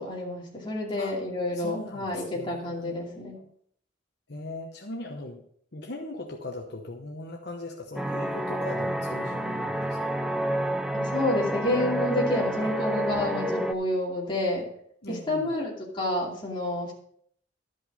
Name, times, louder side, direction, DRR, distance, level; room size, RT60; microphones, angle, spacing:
voice 1, 0.0-3.4 10.9-14.7 15.1-16.9, left 1 dB, 25° left, -3 dB, 2.6 m, -29 dB
voice 2, 1.5-3.4 4.3-5.4 5.7-10.0 12.6-12.7 15.0-15.5, left 2 dB, 55° left, 1 dB, 1.0 m, -39 dB
sound 1, 8.0-13.7, right 1 dB, 5° right, 0.5 m, -29 dB
12.5 x 5.4 x 5.4 m, 0.64 s
head